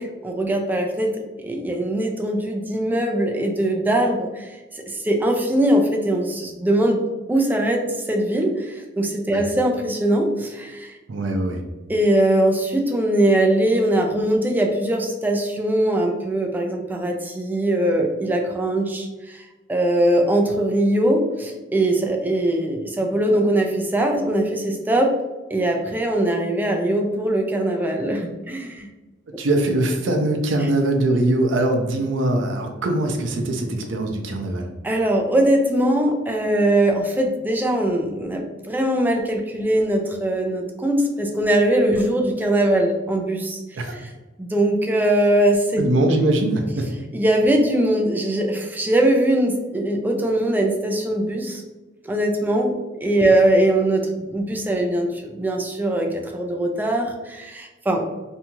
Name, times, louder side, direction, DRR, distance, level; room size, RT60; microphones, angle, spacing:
voice 1, 0.0-7.0 7.3-10.9 11.9-25.1 25.5-28.9 34.8-43.6 44.4-45.8 47.1-51.6 52.0-58.0, right 1 dB, 10° right, 2 dB, 0.3 m, -21 dB
voice 2, 11.1-11.6 29.4-34.7 43.7-44.0 45.8-46.9, right 1 dB, 85° right, 4 dB, 0.5 m, -22 dB
2.6 x 2.3 x 2.9 m, 1.1 s
head